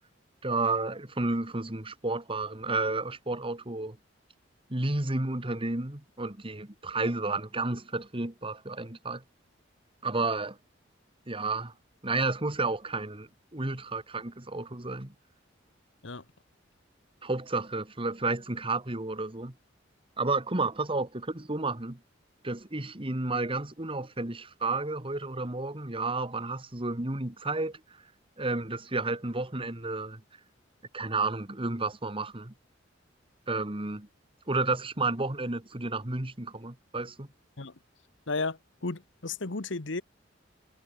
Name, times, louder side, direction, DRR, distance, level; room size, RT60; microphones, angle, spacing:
voice 1, 0.4-4.0 4.7-9.2 10.0-10.6 11.3-11.7 12.0-15.1 17.2-19.5 20.2-22.0 22.4-27.8 28.4-30.2 30.9-32.5 33.5-34.1 34.5-37.3, right 3 dB, 30° right, 1.9 m, -31 dB
voice 2, 38.3-40.0, left 3 dB, 70° left, 1.4 m, -33 dB
head